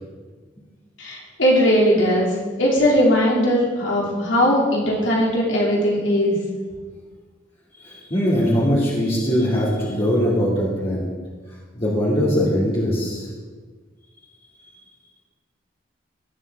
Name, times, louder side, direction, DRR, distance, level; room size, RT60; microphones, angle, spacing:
voice 1, 1.0-2.3 2.6-6.4, equal, 80° left, -3 dB, 2.8 m, -19 dB
voice 2, 7.7-11.1 11.8-13.3, equal, 30° left, -8 dB, 2.4 m, -21 dB
18.5 x 7.3 x 3.6 m, 1.4 s
head